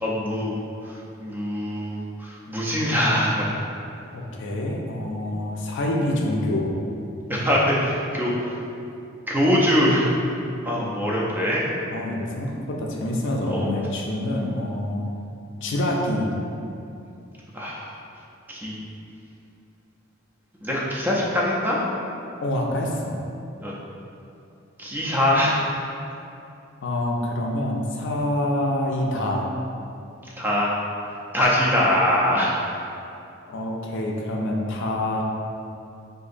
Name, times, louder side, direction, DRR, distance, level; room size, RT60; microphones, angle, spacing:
voice 1, 0.0-0.6 0.9-3.4 7.3-8.5 9.3-10.1 10.6-11.6 13.5-13.7 17.5-17.9 18.5-18.8 20.6-21.8 23.6-23.7 24.8-25.6 30.4-30.7 31.3-32.8, equal, 10° right, -5 dB, 0.4 m, -23 dB
voice 2, 4.1-6.7 11.9-15.1 15.6-16.3 22.4-23.2 26.8-29.5 33.5-35.2, left 1 dB, 65° left, -1 dB, 0.4 m, -26 dB
3.8 x 2.5 x 2.5 m, 2.6 s
head